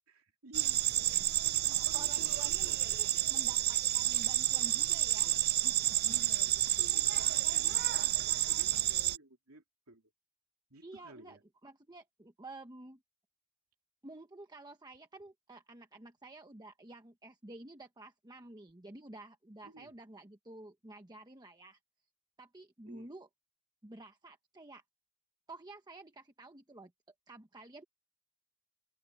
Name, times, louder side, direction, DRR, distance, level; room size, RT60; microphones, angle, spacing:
voice 1, 0.1-0.8 1.4-2.8 6.0-10.1 10.7-11.4 19.6-19.9 22.8-23.1, right 2 dB, 75° right, 3.0 m, -54 dB
sound 1, 0.5-9.2, right 14 dB, 50° right, 0.5 m, -30 dB
voice 2, 1.9-5.8 10.8-13.0 14.0-21.8 22.4-23.3 23.8-24.8 25.5-26.9 27.3-27.8, right 2 dB, 20° right, 1.1 m, -51 dB
open air
head